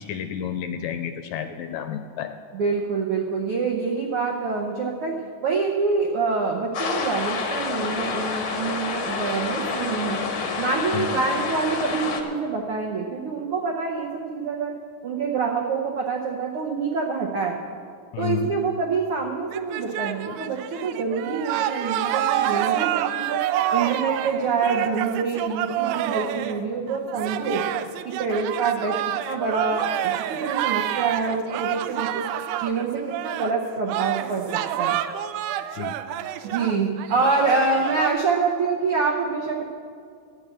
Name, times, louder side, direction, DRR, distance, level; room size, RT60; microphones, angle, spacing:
voice 1, 0.0-2.3 10.9-11.2 18.1-18.5 35.7-36.0, left 9 dB, 80° left, 7 dB, 1.8 m, -30 dB
voice 2, 2.5-5.1 5.4-10.2 10.6-14.7 15.0-17.6 18.2-23.4 23.7-27.6 28.0-29.0 29.3-32.2 32.6-35.0 36.4-39.6, right 4 dB, 70° right, 0 dB, 1.4 m, -26 dB
sound 1, 6.7-12.2, left 4 dB, 55° left, 1.3 m, -28 dB
sound 2, 19.5-33.5 33.8-38.1, right 12 dB, 85° right, 2.1 m, -28 dB
12.0 x 7.5 x 8.7 m, 2.3 s
omnidirectional pair, 3.5 m